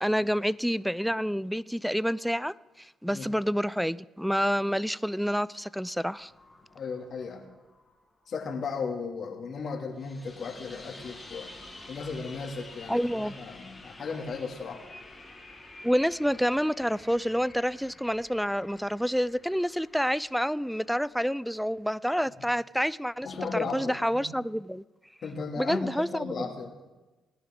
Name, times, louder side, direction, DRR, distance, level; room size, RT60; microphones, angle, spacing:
voice 1, 0.0-6.3 12.9-13.4 15.8-23.3 23.5-24.8 25.6-26.5, equal, ahead, 0.3 m, -28 dB
sound 1, 6.1-8.4 10.0-21.6 23.1-23.6, left 2 dB, 15° left, 3.1 m, -50 dB
voice 2, 6.7-7.4 8.3-11.5 11.9-14.8 23.2-24.2 25.2-26.9, left 5 dB, 55° left, 2.4 m, -35 dB
19.0 x 10.5 x 3.7 m
cardioid pair, 85°, 0 cm